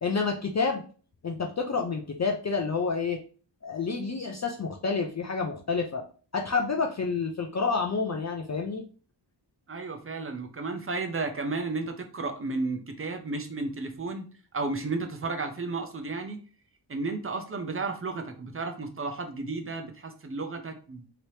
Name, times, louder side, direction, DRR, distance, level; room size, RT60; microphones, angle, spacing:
voice 1, 0.0-0.8 1.2-3.2 3.6-6.0 6.3-8.8, left 4 dB, 40° left, 2 dB, 0.4 m, -29 dB
voice 2, 9.7-14.3 14.5-16.4 16.9-21.1, right 3 dB, 30° right, 5 dB, 0.5 m, -33 dB
3.2 x 2.9 x 2.7 m, 0.39 s
wide cardioid pair, 140°, 44 cm